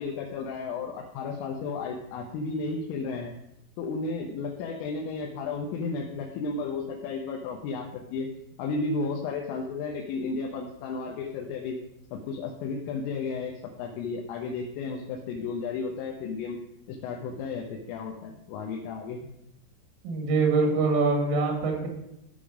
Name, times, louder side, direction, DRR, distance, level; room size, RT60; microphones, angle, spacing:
voice 1, 0.0-3.3 3.8-8.3 8.6-11.8 12.1-16.6 16.9-19.2, left 4 dB, 85° left, 0 dB, 3.6 m, -33 dB
voice 2, 20.0-21.9, right 3 dB, 80° right, 2 dB, 4.6 m, -24 dB
14.5 x 5.2 x 5.0 m, 0.83 s
omnidirectional pair, 5.7 m